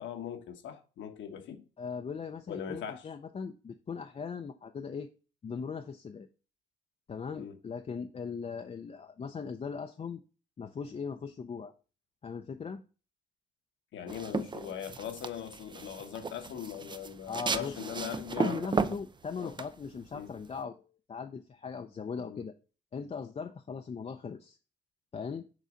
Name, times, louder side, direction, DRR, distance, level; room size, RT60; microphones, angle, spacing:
voice 1, 0.0-1.6 2.5-3.1 7.4-7.6 13.9-18.9 19.4-19.5 20.1-20.3 22.1-22.4, left 9 dB, 70° left, 1.2 m, -41 dB
voice 2, 1.8-5.1 5.4-6.3 7.1-10.2 10.6-11.7 12.2-12.8 17.3-17.8 18.4-20.7 21.1-22.5 22.9-24.6 25.1-25.5, left 5 dB, 30° left, 0.5 m, -39 dB
sound 1, 14.1-20.6, right 4 dB, 25° right, 0.5 m, -35 dB
6.6 x 4.0 x 5.0 m
cardioid pair, 90°, 20 cm